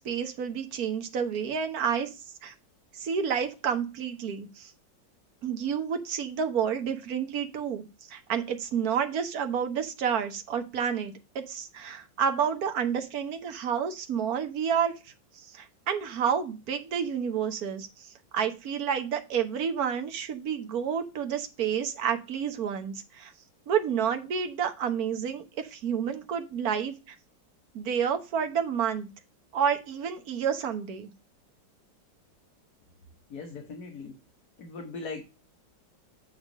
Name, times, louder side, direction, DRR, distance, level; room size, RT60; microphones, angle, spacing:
voice 1, 0.0-2.1 2.4-2.5 2.9-4.7 5.4-15.0 15.4-18.1 18.3-23.3 23.7-27.1 27.7-29.1 29.5-31.1, right 7 dB, 55° right, 7 dB, 1.5 m, -30 dB
voice 2, 33.3-34.2 34.6-35.2, left 4 dB, 60° left, 3 dB, 1.7 m, -39 dB
9.1 x 3.6 x 6.0 m, 0.29 s
omnidirectional pair, 2.0 m